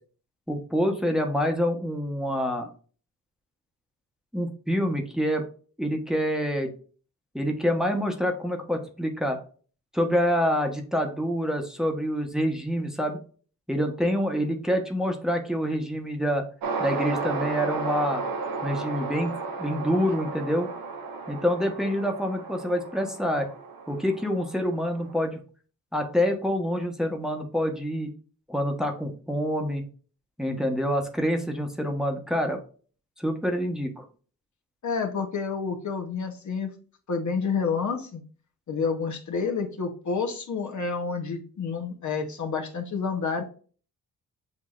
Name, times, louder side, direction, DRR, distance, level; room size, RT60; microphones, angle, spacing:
voice 1, 0.5-2.7 4.3-5.4 5.8-6.7 7.3-9.4 9.9-13.2 13.7-16.4 16.8-18.2 18.6-20.7 21.3-23.5 23.9-25.4 25.9-28.1 28.5-29.8 30.4-32.6 33.2-34.0, equal, ahead, 3 dB, 1.0 m, -26 dB
sound 1, 16.6-25.1, right 4 dB, 70° right, 0.8 m, -33 dB
voice 2, 34.8-36.7 37.1-38.2 38.7-43.4, left 5 dB, 55° left, 3 dB, 0.9 m, -29 dB
7.4 x 2.7 x 2.4 m, 0.41 s
cardioid pair, 55°, 35 cm